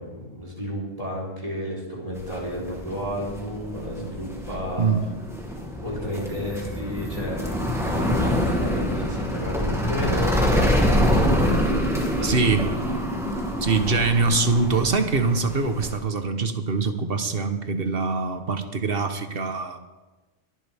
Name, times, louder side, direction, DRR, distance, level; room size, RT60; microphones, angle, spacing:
voice 1, 0.0-4.9 5.8-11.1 11.4-12.4, equal, 30° right, -4 dB, 4.0 m, -32 dB
sound 1, 2.1-16.0, equal, ahead, 2.2 m, -26 dB
voice 2, 12.2-12.6 13.6-19.8, right 4 dB, 50° right, 8 dB, 1.3 m, -23 dB
22.5 x 11.0 x 3.5 m, 1.1 s
omnidirectional pair, 1.2 m